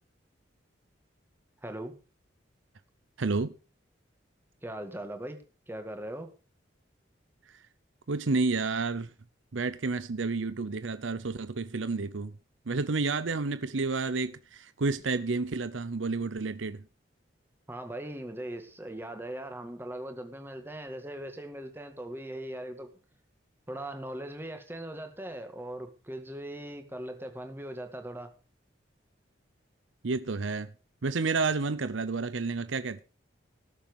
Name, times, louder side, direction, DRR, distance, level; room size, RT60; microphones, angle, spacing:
voice 1, 1.6-1.9 4.6-6.3 17.7-22.9 23.7-28.3, right 1 dB, 10° right, 1.9 m, -40 dB
voice 2, 3.2-3.5 7.5-7.6 8.1-9.1 9.5-12.3 12.7-16.8 30.0-30.7 31.0-33.0, right 3 dB, 80° right, 0.7 m, -30 dB
18.5 x 7.3 x 5.2 m
head